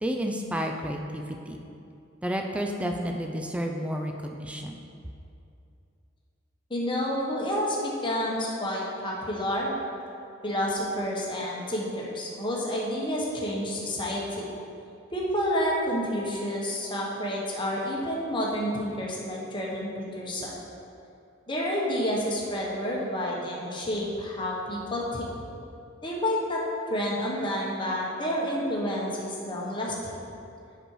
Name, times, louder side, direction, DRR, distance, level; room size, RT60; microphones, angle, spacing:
voice 1, 0.0-1.6 2.2-4.8, equal, 5° right, 3 dB, 0.4 m, -31 dB
voice 2, 6.7-9.7 10.4-14.4 15.1-20.5 21.5-25.4 26.0-26.6 26.9-30.3, equal, 25° left, -4 dB, 1.3 m, -29 dB
7.7 x 6.2 x 4.8 m, 2.5 s
head